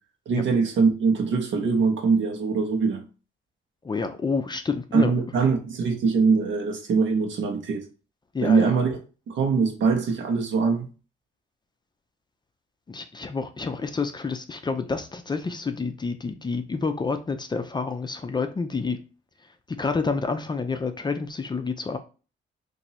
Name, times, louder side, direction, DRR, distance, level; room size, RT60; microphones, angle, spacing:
voice 1, 0.3-3.0 4.9-7.8 8.4-9.0 9.3-10.9, right 5 dB, 70° right, 1.1 m, -22 dB
voice 2, 3.8-5.1 8.3-8.8 12.9-19.0 19.8-22.0, left 4 dB, 20° left, 0.5 m, -28 dB
3.0 x 2.6 x 4.1 m
cardioid pair, 90°, 20 cm